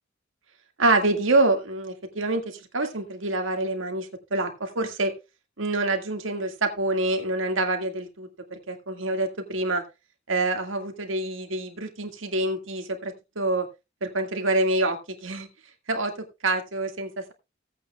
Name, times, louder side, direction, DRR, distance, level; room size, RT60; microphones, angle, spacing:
voice 1, 0.8-5.1 5.6-9.8 10.3-13.7 14.0-15.5 15.9-16.1 16.4-17.3, right 2 dB, 80° right, 5 dB, 1.9 m, -26 dB
16.5 x 8.5 x 2.3 m, 0.25 s
head